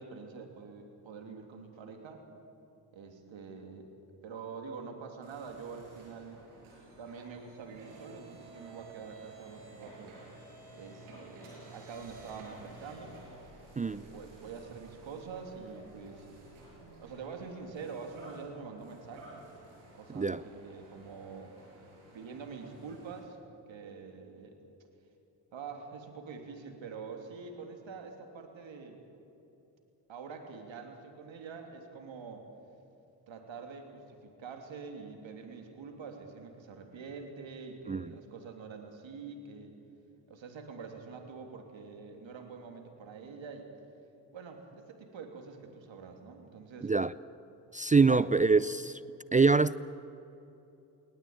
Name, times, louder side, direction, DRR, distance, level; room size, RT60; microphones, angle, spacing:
voice 1, 0.0-2.2 2.9-3.9 4.2-6.4 7.0-10.2 10.8-13.2 13.8-16.3 17.0-19.5 19.9-21.6 22.1-23.4 23.7-24.6 25.5-29.0 30.1-32.5 33.3-39.8 40.3-43.7 44.3-46.9 48.1-48.6, right 5 dB, 65° right, 3.1 m, -45 dB
sound 1, 5.2-23.2, right 2 dB, 80° right, 6.2 m, -53 dB
voice 2, 46.8-47.1 47.7-49.0 49.3-49.7, right 4 dB, 15° right, 0.4 m, -24 dB
20.0 x 18.0 x 9.1 m
hypercardioid pair, 40°, 49 cm